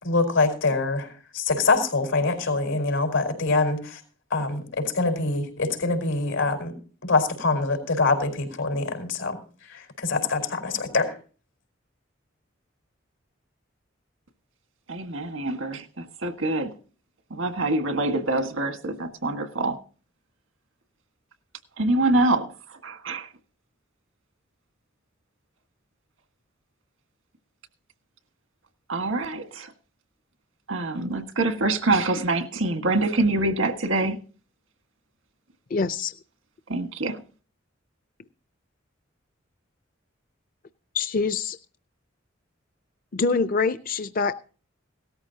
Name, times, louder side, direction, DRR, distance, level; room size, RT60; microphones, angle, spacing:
voice 1, 0.0-4.0 4.3-6.7 7.0-11.2, left 3 dB, 90° left, 4.7 m, -25 dB
voice 2, 14.9-16.7 17.3-19.8 21.8-22.5 22.8-23.3 28.9-29.7 30.7-34.2 36.7-37.2, right 2 dB, 90° right, 1.6 m, -25 dB
voice 3, 35.7-36.1 40.9-41.6 43.1-44.3, left 4 dB, 45° left, 0.5 m, -25 dB
17.5 x 13.5 x 2.8 m
head